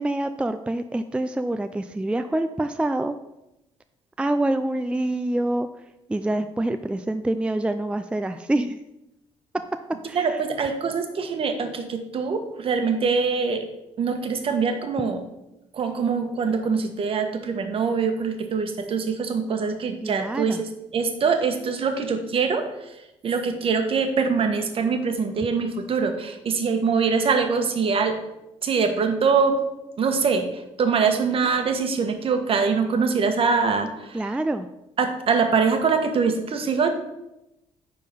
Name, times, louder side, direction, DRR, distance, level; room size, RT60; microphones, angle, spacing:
voice 1, 0.0-3.1 4.2-5.7 6.1-8.8 10.1-10.4 20.0-20.6 34.1-34.7, right 1 dB, 10° right, 9 dB, 0.4 m, -26 dB
voice 2, 10.1-13.6 14.0-15.2 15.7-22.9 23.2-28.1 28.6-29.6 30.0-34.2 35.0-36.9, right 5 dB, 50° right, 6 dB, 1.3 m, -23 dB
9.8 x 3.8 x 5.5 m, 0.91 s
cardioid pair, 90°, 12 cm